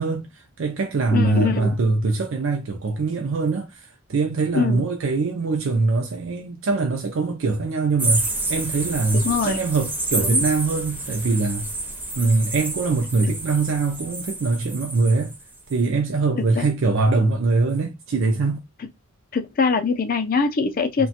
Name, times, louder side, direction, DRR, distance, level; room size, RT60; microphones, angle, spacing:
voice 1, 0.0-11.7 12.2-15.3 15.7-18.6, right 3 dB, 65° right, 0.4 m, -23 dB
voice 2, 1.1-1.8 4.5-4.9 9.2-9.6 10.2-10.4 16.6-16.7 18.8-18.9 19.3-21.1, left 5 dB, 45° left, 0.4 m, -23 dB
sound 1, 8.0-15.4 15.7-15.8, right 2 dB, 10° right, 0.6 m, -28 dB
2.8 x 2.2 x 2.7 m
head